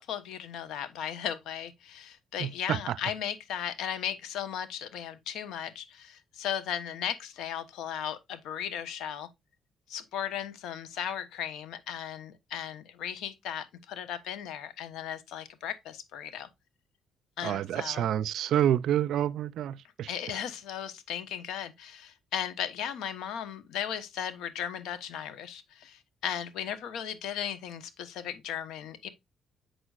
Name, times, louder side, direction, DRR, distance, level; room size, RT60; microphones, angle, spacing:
voice 1, 0.0-9.3 9.9-16.5 17.4-18.1 20.1-29.1, left 9 dB, 85° left, 1.0 m, -36 dB
voice 2, 2.4-3.0 17.4-20.1, right 11 dB, 75° right, 0.5 m, -28 dB
7.8 x 6.3 x 2.5 m
cardioid pair, 90°, 0 cm